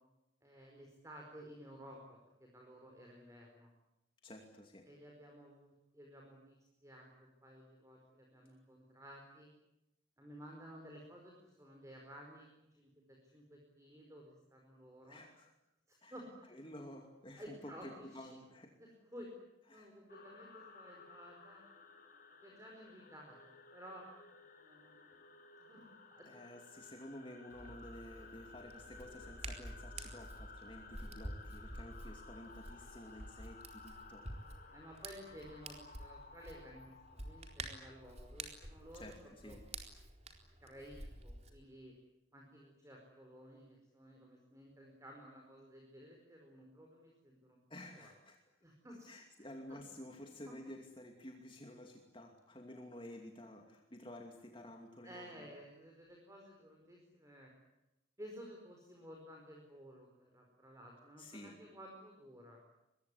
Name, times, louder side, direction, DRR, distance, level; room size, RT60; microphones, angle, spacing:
voice 1, 0.4-3.7 4.9-9.5 10.2-15.2 15.9-16.6 17.4-17.9 18.8-19.3 19.7-21.6 22.4-24.1 24.6-25.2 25.7-26.3 34.7-39.1 39.4-39.6 40.6-41.9 42.3-47.6 48.0-48.1 48.6-49.1 49.7-49.8 50.5-50.6 55.0-57.5 58.2-62.6, equal, 15° right, 1 dB, 4.8 m, -55 dB
voice 2, 4.2-4.9 15.1-15.5 16.0-16.2 16.5-18.8 19.7-20.0 26.2-34.3 38.9-39.6 47.7-48.4 49.1-55.5 61.2-61.6, left 1 dB, 25° left, 3 dB, 2.6 m, -52 dB
sound 1, 20.1-38.8, left 4 dB, 45° left, 4.5 m, -57 dB
Hands, 27.5-41.5, right 2 dB, 35° right, 4.2 m, -50 dB
24.5 x 21.5 x 9.9 m, 0.91 s
head